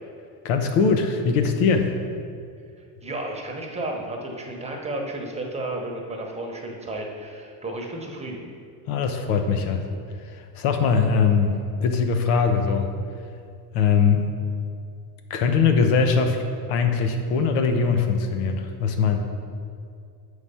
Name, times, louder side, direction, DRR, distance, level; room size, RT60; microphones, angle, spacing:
voice 1, 0.4-1.9 8.9-9.8 10.2-11.6 11.8-12.9 13.7-14.3 15.3-16.4 16.7-19.2, left 5 dB, 80° left, 5 dB, 0.9 m, -21 dB
voice 2, 3.0-8.4, right 2 dB, 15° right, 0 dB, 1.0 m, -32 dB
6.4 x 4.9 x 5.5 m, 2.3 s
supercardioid pair, 110°, 44 cm